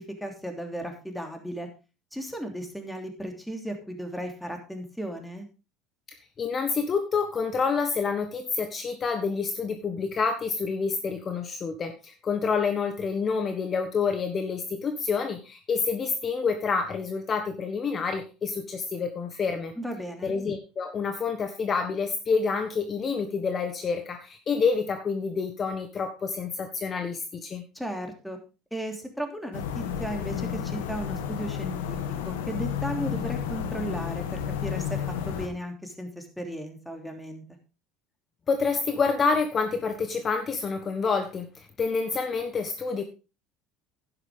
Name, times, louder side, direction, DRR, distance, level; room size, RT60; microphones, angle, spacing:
voice 1, 0.0-1.7 2.1-5.5 19.8-20.3 27.7-28.4 28.7-32.0 32.2-35.0 35.3-37.4, equal, 5° left, 4 dB, 3.0 m, -35 dB
voice 2, 6.4-19.7 20.2-27.6 38.5-43.0, left 5 dB, 35° left, 7 dB, 1.3 m, -28 dB
sound 1, 29.5-35.5, left 8 dB, 75° left, 1.5 m, -31 dB
11.0 x 9.7 x 3.7 m, 0.30 s
hypercardioid pair, 70°, 0 cm